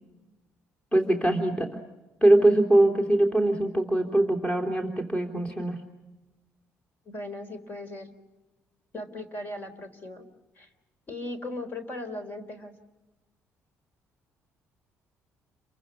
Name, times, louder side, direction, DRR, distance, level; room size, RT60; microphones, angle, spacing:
voice 1, 0.9-1.7 2.2-5.8, right 1 dB, 15° left, 5 dB, 3.3 m, -22 dB
voice 2, 7.1-8.1 8.9-10.2 10.6-10.7 11.1-12.7, left 1 dB, 40° left, 9 dB, 3.9 m, -38 dB
29.5 x 23.5 x 6.1 m, 1.1 s
cardioid pair, 120°, 5 cm